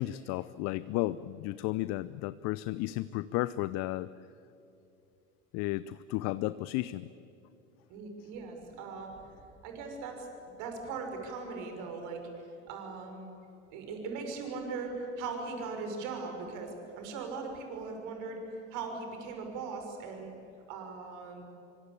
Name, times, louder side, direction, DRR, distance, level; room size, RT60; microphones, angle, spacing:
voice 1, 0.0-4.1 5.5-7.1, left 17 dB, 45° left, 17 dB, 0.6 m, -33 dB
voice 2, 7.9-9.1 9.6-10.3 10.6-12.2 12.7-13.3 13.7-20.3 20.7-21.4, right 4 dB, 55° right, 4 dB, 5.7 m, -39 dB
26.0 x 24.5 x 8.5 m, 2.8 s
figure-of-eight pair, 75°, 37 cm